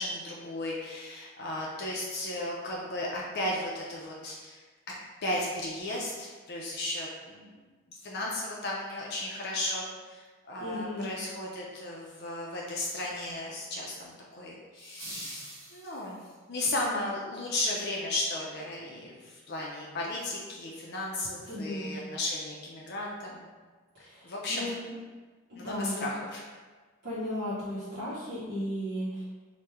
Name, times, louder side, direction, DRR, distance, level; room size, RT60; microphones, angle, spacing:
voice 1, 0.0-4.6 5.2-7.6 7.9-16.2 16.5-23.4 24.0-24.8 25.5-26.4, left 1 dB, 55° left, -3 dB, 0.4 m, -35 dB
voice 2, 10.6-11.1 21.5-21.9 23.9-24.9 25.5-26.1 27.0-29.2, left 1 dB, 55° right, -10 dB, 0.7 m, -35 dB
sound 1, 14.8-16.4, right 2 dB, 80° right, 0.9 m, -45 dB
3.1 x 2.1 x 3.4 m, 1.4 s
head